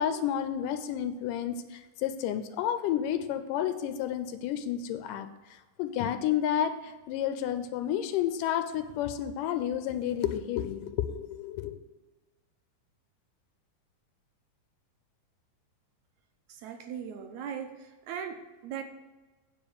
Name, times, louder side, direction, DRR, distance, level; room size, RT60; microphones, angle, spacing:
voice 1, 0.0-11.8, left 10 dB, 85° left, 9 dB, 2.2 m, -31 dB
voice 2, 16.5-18.8, right 8 dB, 75° right, 5 dB, 1.9 m, -39 dB
9.0 x 4.9 x 7.1 m, 1.2 s
omnidirectional pair, 3.7 m